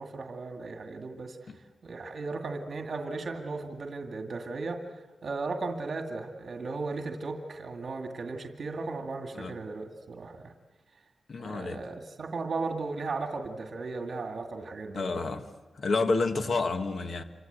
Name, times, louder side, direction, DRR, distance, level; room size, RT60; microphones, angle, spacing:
voice 1, 0.0-10.5 11.4-15.1, right 3 dB, 55° right, 2.2 m, -36 dB
voice 2, 11.3-11.8 14.9-15.4 15.7-17.2, left 3 dB, 60° left, 1.5 m, -29 dB
27.5 x 24.5 x 8.2 m
wide cardioid pair, 135°, 0 cm